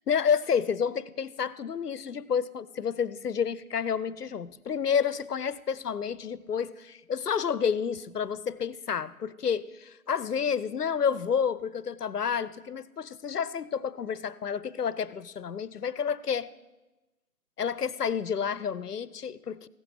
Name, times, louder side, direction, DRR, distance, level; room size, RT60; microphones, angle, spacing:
voice 1, 0.1-16.5 17.6-19.7, left 7 dB, 90° left, 19 dB, 0.6 m, -30 dB
15.5 x 6.2 x 5.5 m, 1.1 s
figure-of-eight pair, 150°, 45 cm